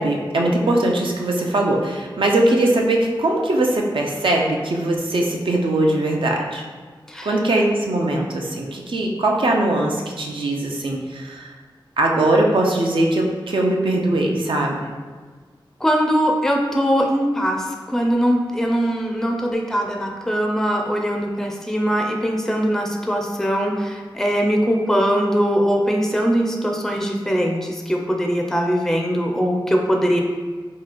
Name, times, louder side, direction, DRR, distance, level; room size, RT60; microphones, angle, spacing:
voice 1, 0.0-6.6 7.2-11.5 12.0-14.8, right 1 dB, 75° right, 0 dB, 0.5 m, -20 dB
voice 2, 15.8-30.2, equal, 5° left, 1 dB, 0.4 m, -21 dB
3.0 x 2.3 x 4.1 m, 1.5 s
wide cardioid pair, 55°, 9 cm